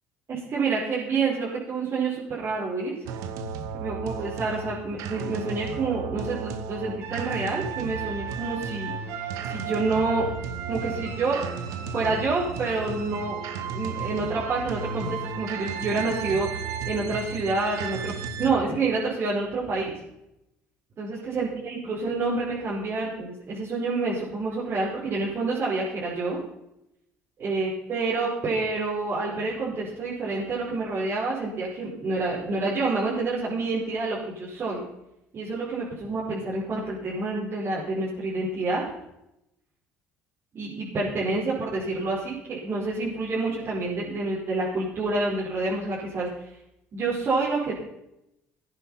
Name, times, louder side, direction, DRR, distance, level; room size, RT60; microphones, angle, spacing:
voice 1, 0.3-2.9 3.7-10.3 10.7-11.4 11.9-13.4 13.7-18.1 18.4-20.0 21.0-26.4 27.4-34.8 35.3-38.8 40.5-46.5 46.9-47.7, right 3 dB, 45° right, -8 dB, 5.3 m, -28 dB
sound 1, 3.1-18.5, right 6 dB, 75° right, 1.6 m, -34 dB
15.0 x 10.0 x 5.7 m, 0.85 s
supercardioid pair, 95°, 6 cm